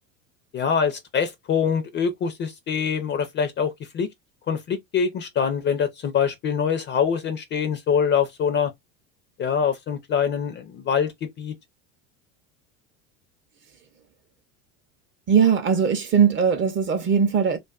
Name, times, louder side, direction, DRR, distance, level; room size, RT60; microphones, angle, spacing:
voice 1, 0.5-4.1 4.5-8.7 9.4-11.5, left 7 dB, 30° left, 0.4 m, -24 dB
voice 2, 15.3-17.6, right 7 dB, 30° right, 0.6 m, -20 dB
2.4 x 2.3 x 2.3 m
supercardioid pair, 110°, 40 cm